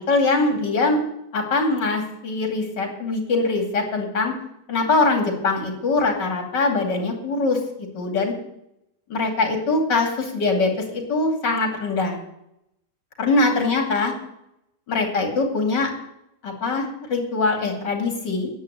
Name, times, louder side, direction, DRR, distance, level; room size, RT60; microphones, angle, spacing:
voice 1, 0.1-1.0 1.3-4.3 4.7-8.3 9.1-12.2 13.2-14.1 14.9-15.9 16.4-18.5, left 3 dB, 80° left, 2 dB, 3.2 m, -22 dB
10.5 x 8.2 x 9.1 m, 0.80 s
omnidirectional pair, 1.9 m